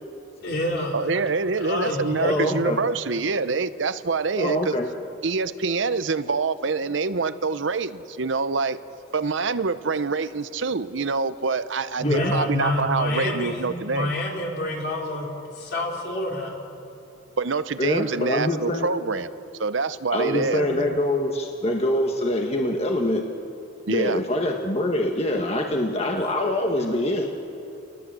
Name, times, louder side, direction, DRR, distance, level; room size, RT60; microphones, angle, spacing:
voice 1, 0.4-1.0 1.6-2.6 12.0-15.3 15.6-16.6, left 1 dB, 60° left, -1 dB, 3.9 m, -27 dB
voice 2, 0.9-4.8 5.2-8.8 9.1-14.1 17.4-19.3 19.6-21.0 23.9-24.2, right 4 dB, 80° right, 13 dB, 0.8 m, -26 dB
voice 3, 2.2-2.8 4.3-4.9 12.0-12.3 17.8-18.9 20.1-23.2 23.9-27.3, left 1 dB, 35° left, 2 dB, 1.4 m, -24 dB
30.0 x 19.5 x 7.6 m, 2.8 s
head